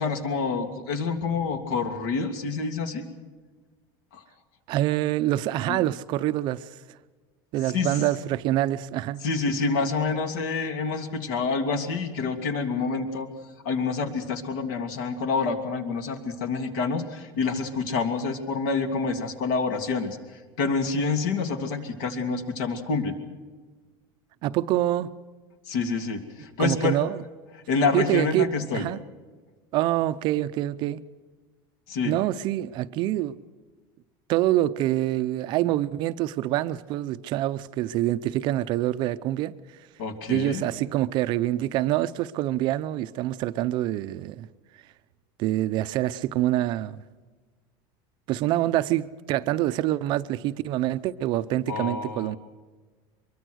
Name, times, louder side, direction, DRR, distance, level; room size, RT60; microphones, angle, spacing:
voice 1, 0.0-3.0 4.1-4.2 5.7-5.8 7.7-7.9 9.2-13.3 13.6-20.2 20.6-23.1 25.7-27.0 27.7-28.9 31.9-32.1 40.0-40.7 51.7-52.3, left 4 dB, 65° left, 2.8 m, -27 dB
voice 2, 4.7-6.7 7.5-9.2 24.4-25.1 26.6-27.2 27.9-29.0 29.7-31.0 32.0-33.4 34.3-39.5 40.3-44.5 45.4-47.0 48.3-52.4, right 14 dB, 40° right, 0.6 m, -26 dB
23.5 x 22.5 x 6.4 m
supercardioid pair, 165°, 12 cm